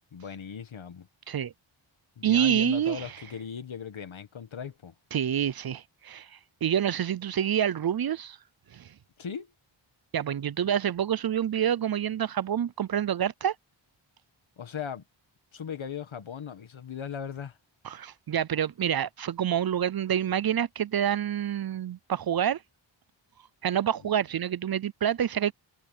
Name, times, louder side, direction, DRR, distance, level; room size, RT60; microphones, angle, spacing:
voice 1, 0.1-1.1 2.2-4.9 9.2-9.5 14.6-15.0 15.5-17.6, left 7 dB, 70° left, 1.8 m, -38 dB
voice 2, 2.2-3.1 5.1-6.3 6.6-8.4 8.7-8.9 10.1-13.5 17.8-22.6 23.6-25.5, right 9 dB, 50° right, 0.5 m, -27 dB
wide cardioid pair, 105°, 49 cm